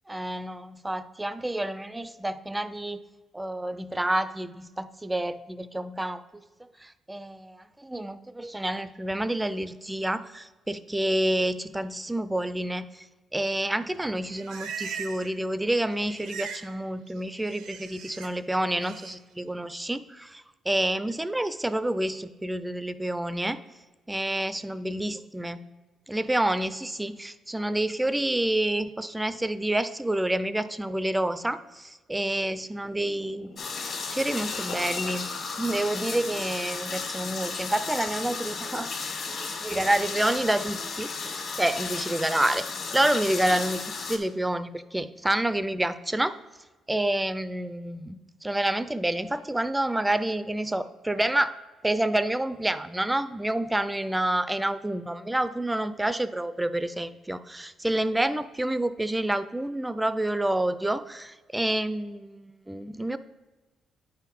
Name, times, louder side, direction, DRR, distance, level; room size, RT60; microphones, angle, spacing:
voice 1, 0.1-3.0 3.3-6.4 6.8-13.1 13.3-23.6 24.1-25.6 26.1-33.5 34.1-41.1 41.6-42.7 42.9-46.3 46.9-51.5 51.8-63.2, right 1 dB, 10° right, 13 dB, 0.4 m, -28 dB
Livestock farm animals working animals, 14.0-15.4 15.6-16.7 17.0-18.3 18.7-19.1, right 7 dB, 85° right, 0.8 m, -40 dB
sound 1, 32.4-35.2, left 4 dB, 80° left, 1.7 m, -41 dB
sound 2, 33.6-44.2, left 4 dB, 60° left, 1.6 m, -34 dB
9.2 x 4.6 x 5.2 m, 1.2 s
cardioid pair, 90°, 0 cm